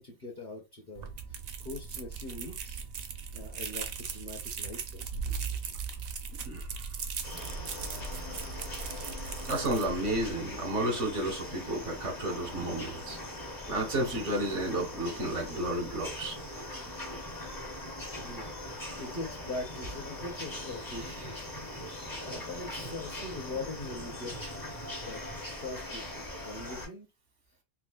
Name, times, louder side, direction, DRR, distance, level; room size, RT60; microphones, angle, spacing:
voice 1, 0.0-2.8 3.3-5.1 18.1-21.5 22.2-24.5 25.0-27.1, left 2 dB, 45° left, 1.0 m, -42 dB
sound 1, 1.0-10.3, right 5 dB, 65° right, 0.7 m, -38 dB
voice 2, 6.4-6.8 9.4-13.2 13.7-16.4, right 1 dB, 85° right, 1.5 m, -32 dB
sound 2, 7.2-26.9, left 1 dB, 20° left, 0.6 m, -41 dB
4.6 x 2.1 x 2.3 m
omnidirectional pair, 1.2 m